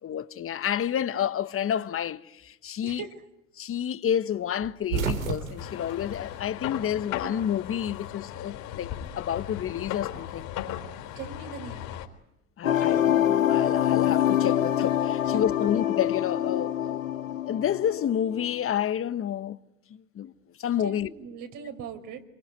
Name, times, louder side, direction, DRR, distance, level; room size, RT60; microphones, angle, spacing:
voice 1, 0.0-3.0 3.6-10.5 12.6-19.6 19.9-20.3 20.6-21.1, left 9 dB, 35° left, 1.5 m, -29 dB
voice 2, 2.8-3.2 11.2-12.0 20.8-22.2, right 6 dB, 55° right, 4.8 m, -40 dB
sound 1, 4.6-7.1 7.4-8.5 9.7-11.1, right 6 dB, 85° right, 3.5 m, -34 dB
sound 2, 5.6-12.1, left 11 dB, 60° left, 4.6 m, -37 dB
sound 3, 12.6-18.5, left 11 dB, 90° left, 2.2 m, -25 dB
27.0 x 23.5 x 9.2 m
hypercardioid pair, 85°, 39 cm